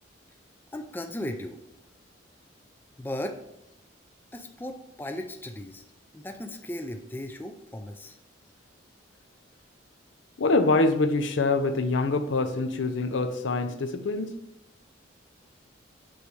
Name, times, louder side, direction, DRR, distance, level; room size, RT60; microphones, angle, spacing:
voice 1, 0.7-1.6 3.0-3.4 4.3-5.8 6.1-8.2, left 1 dB, 10° left, 5 dB, 0.4 m, -36 dB
voice 2, 10.4-14.4, left 3 dB, 75° left, 8 dB, 0.6 m, -25 dB
7.7 x 3.3 x 4.9 m, 0.84 s
head